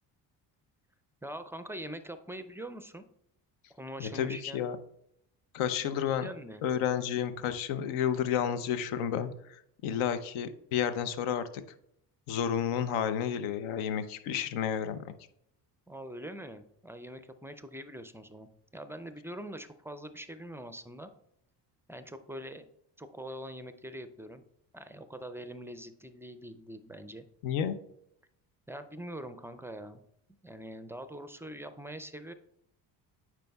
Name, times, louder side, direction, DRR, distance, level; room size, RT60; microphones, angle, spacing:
voice 1, 1.2-3.0 3.8-4.6 6.2-6.6 15.9-21.1 21.9-22.7 23.0-24.4 24.7-27.2 28.7-30.0 30.3-32.3, right 1 dB, 5° right, 10 dB, 0.3 m, -43 dB
voice 2, 4.0-4.8 5.5-6.3 6.6-11.6 12.3-15.0 27.4-27.8, left 9 dB, 75° left, 11 dB, 0.7 m, -31 dB
9.0 x 4.7 x 2.3 m, 0.72 s
supercardioid pair, 60°, 49 cm